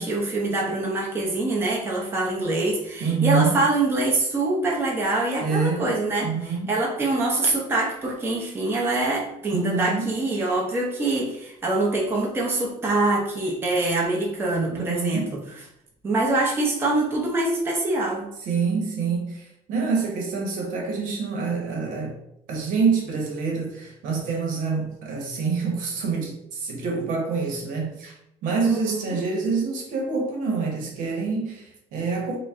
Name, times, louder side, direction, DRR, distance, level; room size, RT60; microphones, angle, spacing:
voice 1, 0.0-6.3 6.7-15.4 16.0-18.3 28.6-29.2, right 2 dB, 15° right, -3 dB, 0.6 m, -24 dB
voice 2, 3.0-3.6 5.4-5.9 6.2-6.7 9.5-10.2 14.7-15.4 18.4-22.2 22.5-28.1 28.4-32.4, right 4 dB, 75° right, 1 dB, 1.0 m, -26 dB
4.0 x 2.1 x 3.5 m, 0.79 s
cardioid pair, 165°, 14 cm